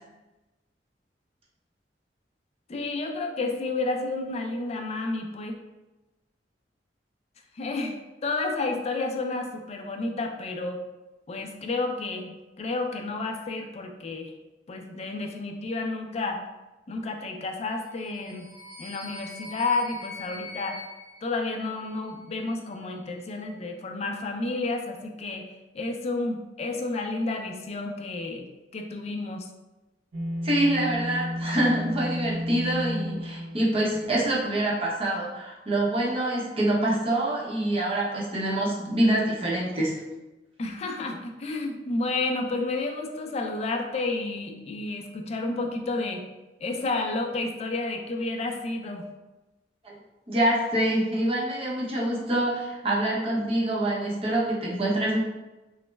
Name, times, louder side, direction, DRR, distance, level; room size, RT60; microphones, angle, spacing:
voice 1, 2.7-5.5 7.5-8.0 8.2-10.8 11.3-14.3 14.7-16.4 16.9-18.5 18.8-20.8 21.2-25.5 25.7-28.5 28.7-29.5 40.6-46.2 46.6-49.1, left 3 dB, 35° left, 3 dB, 0.4 m, -31 dB
sound 1, 17.9-22.2, left 2 dB, 10° left, 0.8 m, -43 dB
sound 2, 30.1-34.4, equal, 85° right, 0.5 m, -32 dB
voice 2, 30.4-39.9 49.8-50.0 50.3-55.2, right 1 dB, 35° right, -5 dB, 0.7 m, -25 dB
3.1 x 2.0 x 3.2 m, 1.1 s
head